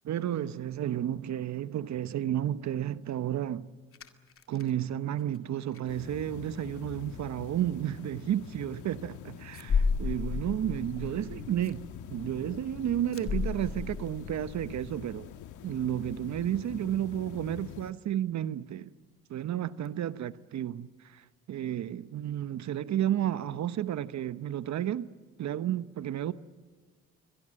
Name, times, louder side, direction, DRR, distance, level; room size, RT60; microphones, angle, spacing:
voice 1, 0.1-3.7 4.5-11.8 12.1-15.3 15.6-18.9 19.3-25.1 25.4-26.3, right 11 dB, 65° right, 1.0 m, -32 dB
sound 1, 3.9-4.7 5.2-5.4 5.7-5.8 6.6-6.9 7.2-7.4 7.7-7.8 9.5-15.4 15.7-15.9 16.1-16.2 19.9-20.0, left 5 dB, 45° left, 2.2 m, -34 dB
sound 2, 5.9-17.9, left 9 dB, 80° left, 1.4 m, -45 dB
29.5 x 23.5 x 7.7 m
cardioid pair, 90°, 30 cm